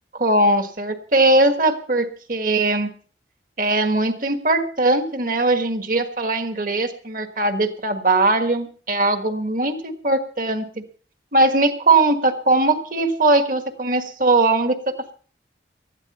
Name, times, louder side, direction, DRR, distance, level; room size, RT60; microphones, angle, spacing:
voice 1, 0.1-2.9 3.6-10.8 11.3-15.1, right 2 dB, 50° right, 8 dB, 1.7 m, -20 dB
19.0 x 13.0 x 4.3 m, 0.43 s
head